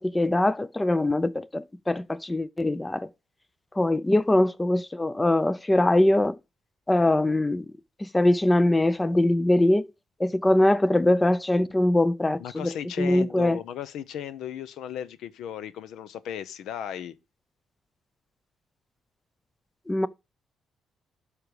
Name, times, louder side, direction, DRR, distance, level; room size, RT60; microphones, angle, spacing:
voice 1, 0.0-3.1 3.8-6.4 6.9-7.7 8.0-9.9 10.2-12.7 13.0-13.6 19.9-20.1, left 1 dB, 15° left, 0.5 m, -22 dB
voice 2, 12.4-17.2, left 9 dB, 80° left, 0.7 m, -36 dB
12.0 x 5.0 x 4.7 m
cardioid pair, 90°, 0 cm